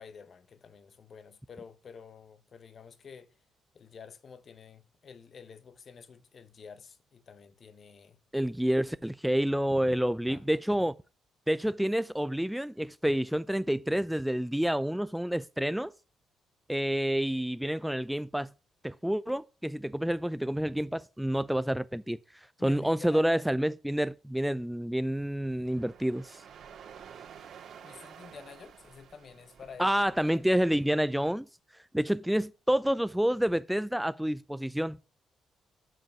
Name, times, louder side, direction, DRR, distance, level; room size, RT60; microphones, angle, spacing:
voice 1, 0.0-3.3 3.7-8.2 10.3-10.6 22.6-23.5 27.8-30.0, left 6 dB, 45° left, 0.9 m, -49 dB
voice 2, 8.3-10.9 11.5-15.9 16.7-18.5 18.8-22.2 22.6-26.4 29.8-31.5 31.9-35.0, equal, 5° right, 0.3 m, -28 dB
sound 1, 25.6-31.3, right 8 dB, 70° right, 2.2 m, -51 dB
7.4 x 5.4 x 6.0 m
cardioid pair, 90°, 0 cm